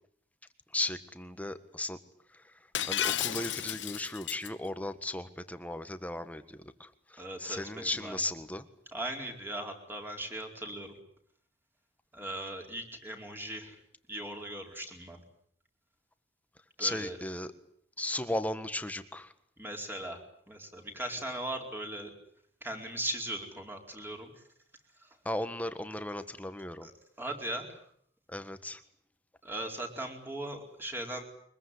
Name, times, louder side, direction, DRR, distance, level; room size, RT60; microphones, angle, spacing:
voice 1, 0.7-2.0 2.8-8.7 16.8-17.5 18.0-19.3 25.2-26.9 28.3-28.8, left 1 dB, 10° left, 10 dB, 1.6 m, -36 dB
Shatter, 2.7-4.5, left 11 dB, 75° left, 1.1 m, -32 dB
voice 2, 7.2-8.2 8.9-10.9 12.1-13.7 14.1-15.2 16.8-17.2 19.6-20.2 20.5-22.1 22.6-24.3 26.8-26.9 27.2-27.7 29.4-31.2, right 1 dB, 10° right, 3 dB, 4.5 m, -38 dB
24.0 x 22.0 x 9.9 m, 0.67 s
head